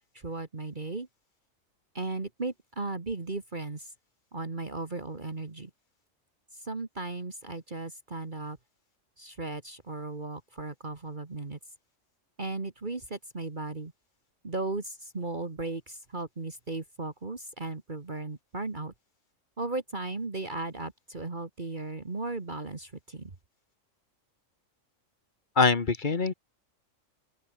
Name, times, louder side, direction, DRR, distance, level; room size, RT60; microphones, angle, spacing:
voice 1, 0.1-1.1 1.9-3.9 4.3-5.7 6.5-8.6 9.2-11.6 12.4-13.9 14.4-18.9 19.6-23.3, right 3 dB, 35° right, 2.0 m, -36 dB
voice 2, 25.6-26.3, left 4 dB, 40° left, 1.5 m, -23 dB
open air
omnidirectional pair, 1.4 m